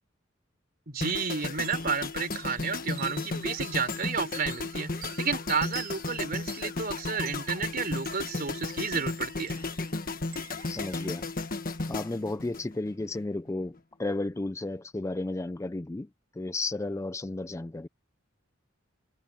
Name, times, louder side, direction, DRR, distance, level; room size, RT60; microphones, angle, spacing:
voice 1, 0.9-4.9 5.2-9.6, right 5 dB, 50° right, 3.5 m, -31 dB
sound 1, 1.0-13.2 13.5-13.8, left 3 dB, 45° left, 1.5 m, -34 dB
sound 2, 1.6-11.9, right 13 dB, 85° right, 5.2 m, -49 dB
voice 2, 10.7-11.2 11.9-13.7 14.0-16.1 16.4-17.9, left 2 dB, 15° left, 0.4 m, -33 dB
head